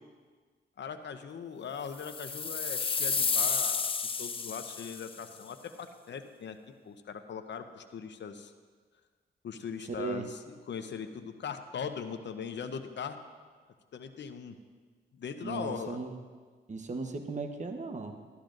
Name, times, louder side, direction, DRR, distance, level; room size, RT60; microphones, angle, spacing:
voice 1, 0.8-3.9 4.2-6.6 6.8-8.5 9.4-13.2 13.9-14.6 15.1-16.0, left 6 dB, 65° left, 7 dB, 0.8 m, -40 dB
sound 1, 2.0-5.2, left 5 dB, 30° left, 0.4 m, -31 dB
voice 2, 10.0-10.3 15.4-16.1 16.7-18.2, right 3 dB, 40° right, 6 dB, 1.0 m, -36 dB
14.0 x 11.5 x 2.6 m, 1.5 s
cardioid pair, 55°, 20 cm